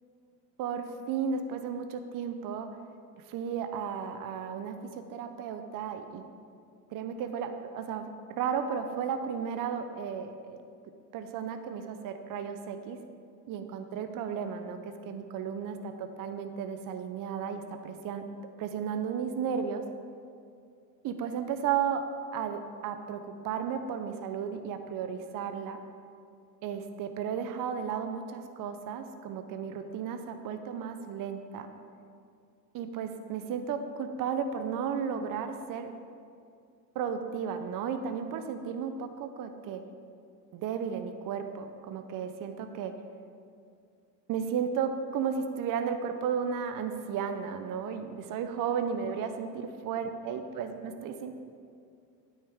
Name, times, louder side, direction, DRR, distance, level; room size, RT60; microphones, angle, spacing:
voice 1, 0.6-2.7 3.3-4.8 5.1-6.2 6.9-10.6 11.1-13.0 13.5-14.8 15.1-18.2 18.6-19.8 21.0-22.0 22.3-25.8 26.6-31.7 32.7-35.9 36.9-39.8 40.5-42.9 44.3-51.4, right 7 dB, 40° right, 7 dB, 0.7 m, -34 dB
9.4 x 9.1 x 3.6 m, 2.3 s
hypercardioid pair, 85°, 50 cm